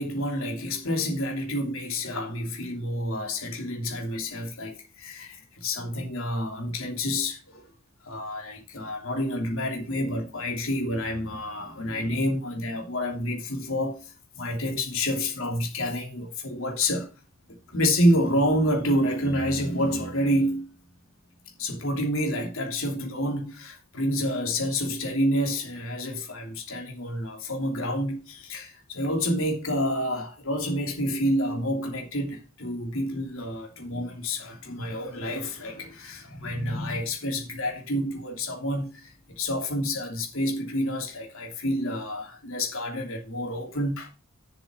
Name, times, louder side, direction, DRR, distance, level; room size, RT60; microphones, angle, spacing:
voice 1, 0.0-7.7 8.0-17.1 17.5-20.7 21.6-44.1, equal, 65° left, 3.0 m, -28 dB
7.4 x 6.8 x 6.3 m
head